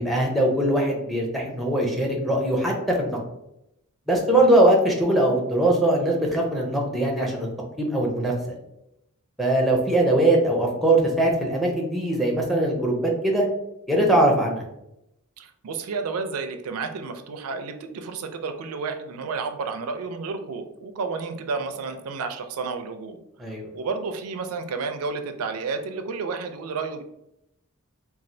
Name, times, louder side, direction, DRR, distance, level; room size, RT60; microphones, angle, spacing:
voice 1, 0.0-3.2 4.1-7.5 7.8-8.3 9.4-13.5 13.9-14.6 23.4-23.7, right 1 dB, ahead, -1 dB, 0.5 m, -21 dB
voice 2, 15.4-23.2 23.7-27.0, right 4 dB, 70° right, 7 dB, 0.4 m, -31 dB
3.1 x 2.3 x 2.6 m, 0.85 s
head